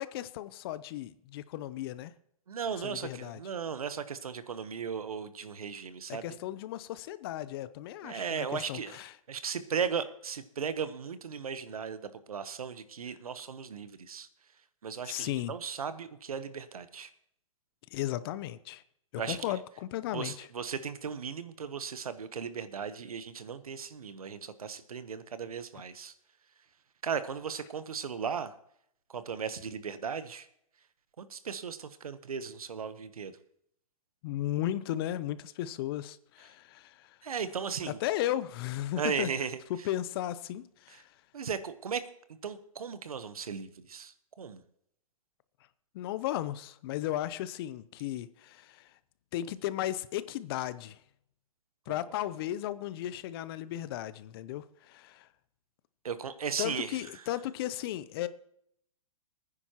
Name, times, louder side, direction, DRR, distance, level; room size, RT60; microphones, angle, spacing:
voice 1, 0.0-2.1 2.8-3.4 6.1-9.1 15.0-15.6 17.9-18.8 19.1-20.5 34.2-37.2 37.9-39.3 39.7-41.1 45.9-48.9 49.3-51.0 51.9-55.3 56.6-58.3, left 13 dB, 40° left, 0.6 m, -35 dB
voice 2, 2.5-6.2 8.0-9.0 9.3-14.3 14.8-17.1 19.2-19.4 20.1-26.1 27.0-28.5 29.1-30.5 31.2-33.3 37.2-38.0 39.0-39.6 41.3-42.1 42.4-44.6 51.9-52.0 56.0-57.0, right 6 dB, 85° right, 1.1 m, -36 dB
21.5 x 9.8 x 3.0 m
hypercardioid pair, 135°, 18 cm